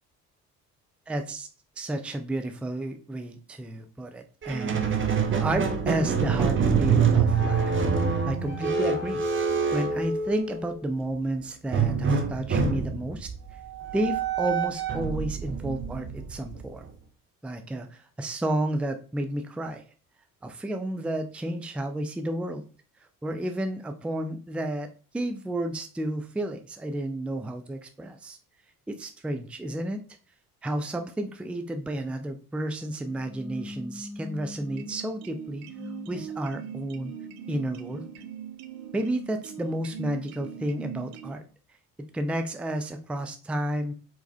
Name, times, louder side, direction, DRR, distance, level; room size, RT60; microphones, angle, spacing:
voice 1, 1.1-1.5 1.8-9.2 9.7-13.3 13.9-16.9 17.4-19.8 20.4-22.6 23.2-24.9 25.1-28.4 28.9-30.0 30.6-35.7 36.1-37.1 37.5-38.0 38.9-41.4 42.1-43.9, right 1 dB, 5° right, 7 dB, 0.5 m, -31 dB
Squeak, 4.4-10.8 11.7-16.9, right 6 dB, 25° right, 0.9 m, -26 dB
sound 1, 33.0-35.0 35.6-38.3 38.9-41.2, left 2 dB, 40° left, 1.9 m, -44 dB
sound 2, 34.7-41.3, right 9 dB, 55° right, 0.6 m, -41 dB
4.7 x 3.9 x 2.2 m, 0.37 s
figure-of-eight pair, 50°, 45 cm